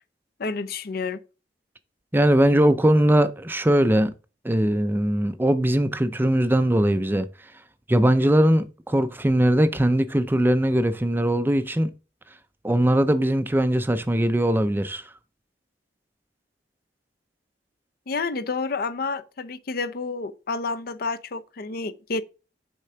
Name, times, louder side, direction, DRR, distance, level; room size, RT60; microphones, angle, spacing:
voice 1, 0.4-1.2 18.1-22.2, left 4 dB, 55° left, 0.6 m, -29 dB
voice 2, 2.1-4.1 4.4-7.3 7.9-11.9 12.6-15.0, right 1 dB, 10° right, 0.4 m, -20 dB
6.5 x 3.7 x 5.7 m
head